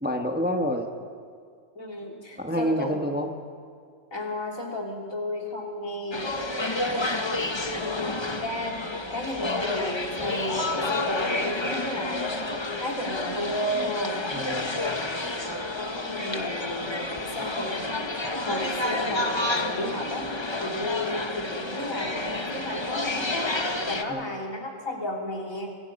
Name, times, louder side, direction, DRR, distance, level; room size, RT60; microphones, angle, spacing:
voice 1, 0.0-0.9 2.4-3.3 6.9-7.3 7.8-7.9 14.3-14.9 24.1-24.2, equal, 5° right, 3 dB, 1.3 m, -29 dB
voice 2, 1.8-3.0 4.1-6.4 7.6-12.5 12.8-14.2 15.3-17.9 18.4-20.3 20.6-25.7, left 1 dB, 70° left, -1 dB, 3.7 m, -33 dB
sound 1, 6.1-24.0, left 2 dB, 20° left, 1.0 m, -30 dB
26.0 x 22.5 x 5.5 m, 2.1 s
omnidirectional pair, 1.4 m